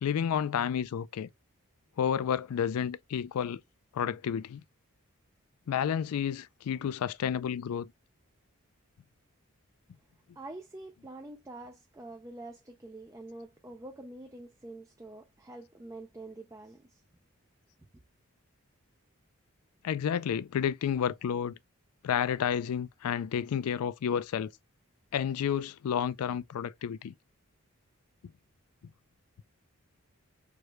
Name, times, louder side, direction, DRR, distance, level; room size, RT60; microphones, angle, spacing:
voice 1, 0.0-1.3 2.0-3.6 3.9-4.6 5.7-7.9 19.8-21.5 22.0-24.5 25.1-27.1, left 8 dB, 85° left, 0.3 m, -30 dB
voice 2, 10.4-17.0, right 2 dB, 15° right, 0.4 m, -46 dB
4.7 x 3.1 x 2.2 m
head